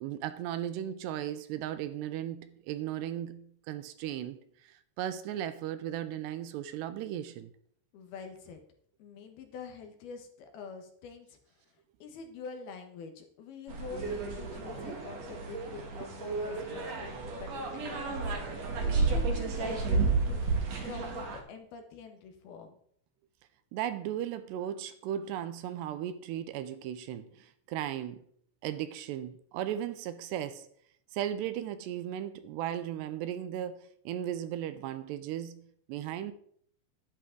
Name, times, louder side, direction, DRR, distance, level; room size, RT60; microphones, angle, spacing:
voice 1, 0.0-7.5 16.0-16.1 23.7-28.2 28.6-30.7 31.1-36.3, right 11 dB, 85° right, 2.8 m, -36 dB
voice 2, 7.9-8.6 9.0-11.4 12.0-18.4 18.9-20.6 20.8-22.8, left 5 dB, 70° left, 3.0 m, -46 dB
sound 1, 13.7-21.4, right 4 dB, 50° right, 2.3 m, -32 dB
11.5 x 10.5 x 3.9 m
omnidirectional pair, 5.0 m